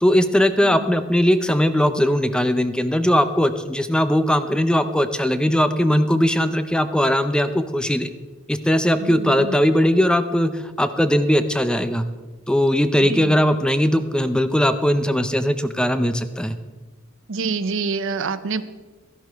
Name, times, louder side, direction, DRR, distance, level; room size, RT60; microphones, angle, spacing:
voice 1, 0.0-8.1 8.5-12.0 12.5-16.6, equal, 5° left, 10 dB, 0.5 m, -19 dB
voice 2, 9.1-9.5 13.0-13.3 17.3-18.6, right 4 dB, 65° right, 14 dB, 0.6 m, -26 dB
13.5 x 11.0 x 4.6 m, 1.3 s
head